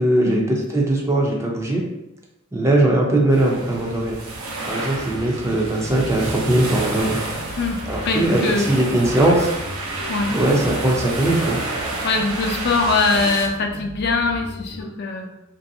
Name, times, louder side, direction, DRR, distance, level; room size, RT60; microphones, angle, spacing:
voice 1, 0.0-1.8 2.5-4.2 4.6-7.2 7.9-9.5 10.3-11.6, right 1 dB, 15° right, -1 dB, 0.4 m, -20 dB
sound 1, 3.3-13.5, right 2 dB, 80° right, 0.7 m, -30 dB
sound 2, 4.9-14.9, equal, 80° left, 0.9 m, -36 dB
voice 2, 7.6-8.8 10.1-10.4 12.0-15.4, left 3 dB, 50° left, 3 dB, 0.4 m, -22 dB
3.1 x 2.6 x 2.6 m, 0.88 s
head